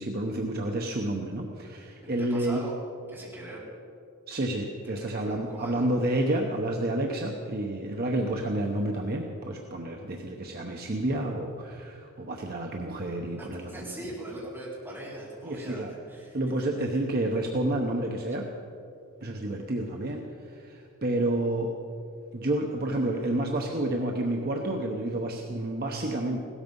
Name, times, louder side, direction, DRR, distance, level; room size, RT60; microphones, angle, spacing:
voice 1, 0.0-2.6 4.3-14.0 15.4-15.9 16.3-18.5 19.2-21.7 22.3-26.4, right 1 dB, 45° right, 1 dB, 0.9 m, -30 dB
voice 2, 2.0-2.7 3.1-3.7 4.8-5.9 13.4-16.4, right 1 dB, 10° right, -7 dB, 4.5 m, -41 dB
16.5 x 13.5 x 5.4 m, 2.5 s
head